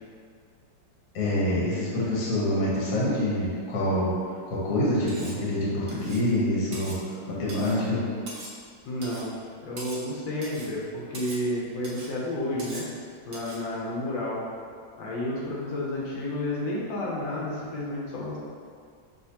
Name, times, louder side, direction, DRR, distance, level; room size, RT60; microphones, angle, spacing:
voice 1, 1.1-4.1 4.5-6.9 7.3-8.0, left 1 dB, 50° left, -6 dB, 1.3 m, -26 dB
Cutlery silverware, 5.1-5.4 5.9-6.3 6.7-7.0 7.5-7.8 8.3-8.6 9.0-9.3 9.8-10.1 10.4-10.7 11.1-11.5 11.8-12.1 12.6-12.9 13.3-13.6, right 2 dB, 55° right, 0.9 m, -42 dB
voice 2, 8.8-9.3 9.6-12.8 13.3-14.4 15.0-18.4, left 1 dB, 80° left, -5 dB, 1.5 m, -31 dB
5.7 x 3.0 x 2.8 m, 2.1 s
omnidirectional pair, 2.1 m